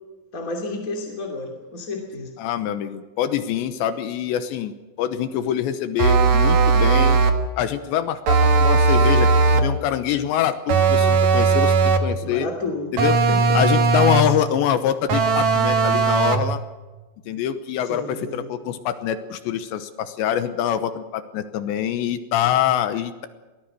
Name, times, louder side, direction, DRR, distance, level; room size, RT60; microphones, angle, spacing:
voice 1, 0.3-2.3 12.2-13.6 14.2-14.6 17.8-18.5, left 2 dB, 25° left, 1 dB, 2.0 m, -31 dB
voice 2, 2.4-7.2 7.6-12.5 12.9-13.2 13.5-16.6 17.3-23.3, left 10 dB, 80° left, 10 dB, 3.0 m, -25 dB
sound 1, 6.0-7.5 8.3-9.8 10.7-12.2 13.0-14.4 15.1-16.5, right 4 dB, 65° right, 1.8 m, -18 dB
23.0 x 18.5 x 6.6 m, 1.2 s
omnidirectional pair, 5.6 m